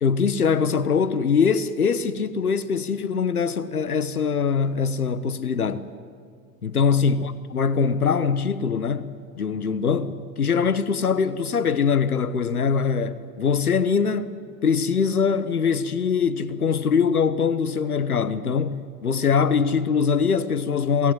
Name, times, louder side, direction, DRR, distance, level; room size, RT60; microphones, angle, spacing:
voice 1, 0.0-5.9 6.6-9.1 9.3-14.3 14.6-21.1, left 6 dB, 90° left, 1.1 m, -22 dB
22.5 x 18.0 x 9.9 m
figure-of-eight pair, 75°, 43 cm